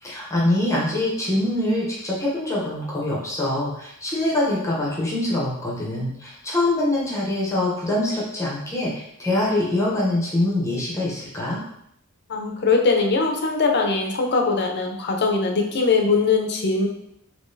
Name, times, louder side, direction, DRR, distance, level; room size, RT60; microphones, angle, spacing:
voice 1, 0.0-11.6, left 1 dB, 15° left, -5 dB, 0.7 m, -24 dB
voice 2, 12.3-16.9, left 4 dB, 50° left, 2 dB, 0.6 m, -21 dB
3.8 x 2.8 x 2.6 m, 0.75 s
head